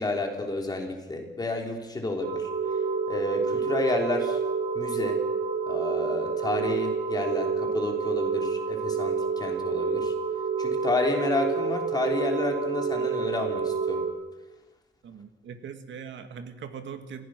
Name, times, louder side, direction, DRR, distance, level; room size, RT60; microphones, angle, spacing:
voice 1, 0.0-2.5 3.1-4.4 4.7-5.2 5.7-10.1 10.6-14.1, left 2 dB, 20° left, 2 dB, 3.2 m, -30 dB
sound 1, 2.2-14.1, right 5 dB, 55° right, 3.1 m, -28 dB
voice 2, 15.0-17.3, right 7 dB, 85° right, 7 dB, 2.1 m, -41 dB
28.0 x 15.5 x 6.2 m, 1.1 s
wide cardioid pair, 165°, 19 cm